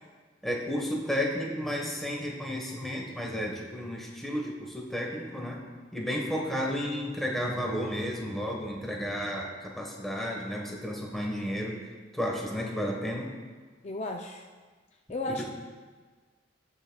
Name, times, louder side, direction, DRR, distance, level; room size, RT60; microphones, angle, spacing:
voice 1, 0.4-5.6 5.9-11.8 12.1-13.3 15.3-15.4, equal, ahead, -1 dB, 1.2 m, -32 dB
voice 2, 13.8-14.5 15.1-15.4, left 2 dB, 35° left, 2 dB, 0.4 m, -34 dB
17.0 x 5.8 x 2.3 m, 1.4 s
head